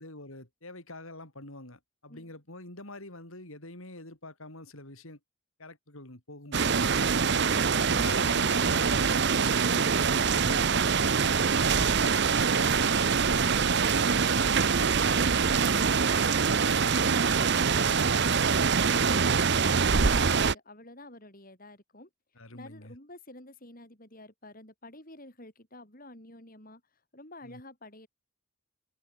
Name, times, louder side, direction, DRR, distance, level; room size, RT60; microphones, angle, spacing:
voice 1, 0.0-5.2 5.6-6.9 7.3-10.6 22.4-23.0 27.4-27.6, left 2 dB, 70° left, 5.9 m, -46 dB
sound 1, 6.5-20.5, right 5 dB, 50° right, 0.8 m, -24 dB
voice 2, 12.6-22.1 22.5-26.8 27.1-28.1, left 2 dB, 40° left, 6.1 m, -49 dB
head